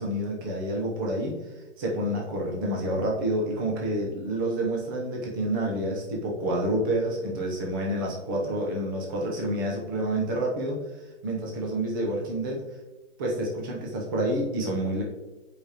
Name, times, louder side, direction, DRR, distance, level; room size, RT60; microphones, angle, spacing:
voice 1, 0.0-1.4 1.8-10.8 11.2-12.6 13.2-15.0, right 1 dB, 20° right, -1 dB, 0.8 m, -28 dB
7.1 x 5.0 x 2.9 m, 1.1 s
hypercardioid pair, 170°, 35 cm